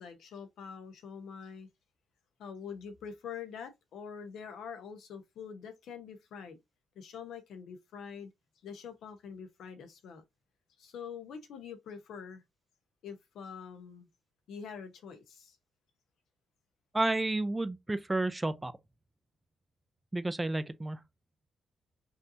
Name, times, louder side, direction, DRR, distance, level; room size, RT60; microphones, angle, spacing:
voice 1, 0.0-1.7 2.4-6.6 6.9-8.3 8.6-10.2 10.8-12.4 13.0-14.1 14.5-15.6, left 6 dB, 75° left, 1.1 m, -45 dB
voice 2, 16.9-18.7 20.1-21.0, right 2 dB, 15° right, 0.5 m, -31 dB
5.3 x 2.7 x 2.8 m
cardioid pair, 90°, 0 cm